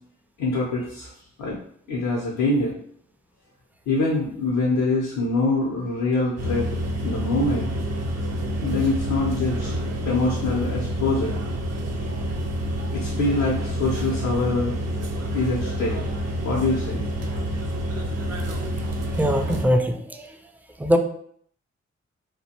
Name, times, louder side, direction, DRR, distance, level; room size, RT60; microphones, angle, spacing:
voice 1, 0.4-1.1 1.4-1.6 1.9-2.7 3.9-7.7 8.6-9.7 10.0-11.4 12.9-14.7 15.3-16.0 16.4-17.1, left 2 dB, 85° left, -4 dB, 0.6 m, -24 dB
sound 1, 6.4-19.7, equal, 60° right, 0.5 m, -28 dB
voice 2, 19.1-20.4 20.8-21.0, equal, 5° right, 6 dB, 0.3 m, -22 dB
2.4 x 2.1 x 2.8 m, 0.63 s
supercardioid pair, 45°, 29 cm